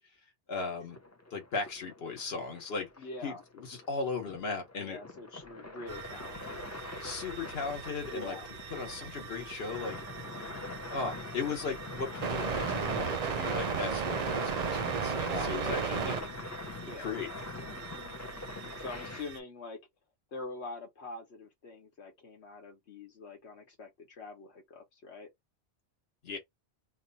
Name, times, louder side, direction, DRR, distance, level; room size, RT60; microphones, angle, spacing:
voice 1, 0.5-1.0 1.3-2.9 3.2-5.0 7.0-8.4 8.7-10.0 10.9-16.2 17.0-17.4 26.2-26.4, left 4 dB, 65° left, 1.3 m, -37 dB
sound 1, 0.9-19.2, left 2 dB, 25° left, 0.4 m, -43 dB
voice 2, 3.0-3.4 4.8-6.6 8.1-8.5 15.3-16.2 16.8-17.1 17.7-19.8 20.3-25.3, left 3 dB, 90° left, 1.3 m, -44 dB
sound 2, 5.9-19.4, right 6 dB, 50° right, 0.5 m, -37 dB
3.0 x 2.3 x 4.0 m
omnidirectional pair, 1.1 m